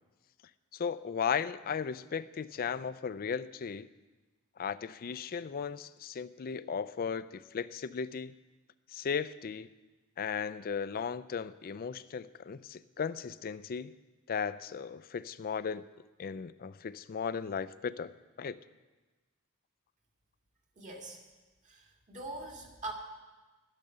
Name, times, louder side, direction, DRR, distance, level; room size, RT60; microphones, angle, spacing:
voice 1, 0.7-3.9 4.6-8.3 8.9-9.7 10.2-13.9 14.3-15.8 16.2-18.1 18.4-18.6, left 6 dB, 40° left, 15 dB, 0.4 m, -36 dB
voice 2, 20.8-21.2 21.6-22.9, right 2 dB, 35° right, 1 dB, 1.8 m, -43 dB
12.5 x 6.6 x 9.5 m, 1.2 s
head